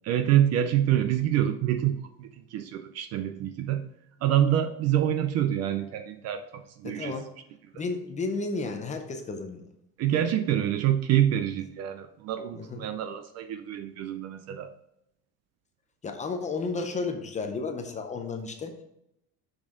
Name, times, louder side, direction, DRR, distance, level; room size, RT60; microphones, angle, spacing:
voice 1, 0.0-3.8 4.2-7.2 10.0-14.7, right 11 dB, 40° right, 10 dB, 0.4 m, -26 dB
voice 2, 6.8-7.3 7.7-9.7 12.5-12.9 16.0-18.8, left 4 dB, 20° left, 5 dB, 0.5 m, -33 dB
6.3 x 6.1 x 3.7 m, 0.80 s
cardioid pair, 160°, 42 cm